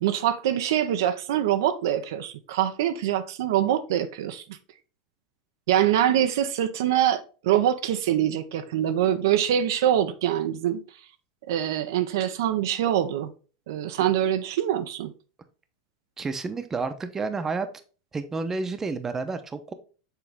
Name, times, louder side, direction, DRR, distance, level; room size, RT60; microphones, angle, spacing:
voice 1, 0.0-4.4 5.7-10.8 11.5-13.3 13.7-15.1, right 11 dB, 75° right, 0.6 m, -24 dB
voice 2, 16.2-17.7 18.1-19.7, right 4 dB, 20° right, 0.8 m, -30 dB
7.3 x 3.8 x 3.5 m
hypercardioid pair, 110°, 2 cm